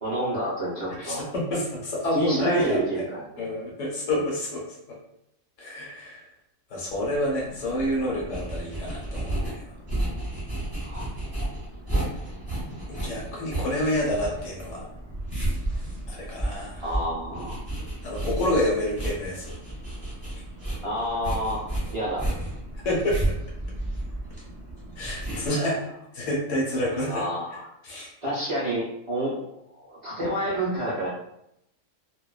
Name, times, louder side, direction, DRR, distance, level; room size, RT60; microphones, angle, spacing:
voice 1, 0.0-1.3 2.1-3.5 4.2-4.3 10.9-11.0 16.8-17.6 20.8-21.6 21.9-22.3 25.7-25.8 27.1-27.7 28.2-31.1, right 1 dB, 35° right, -9 dB, 0.6 m, -29 dB
voice 2, 1.0-3.0 3.4-5.0 5.6-6.2 6.7-9.6 12.9-14.9 16.1-16.8 18.0-19.5 22.7-23.4 25.0-25.9 26.1-27.2 27.8-28.1, left 1 dB, 65° left, -4 dB, 1.0 m, -28 dB
sound 1, 6.9-25.5, right 1 dB, 10° right, 1.1 m, -32 dB
2.5 x 2.2 x 2.3 m, 0.79 s
omnidirectional pair, 1.5 m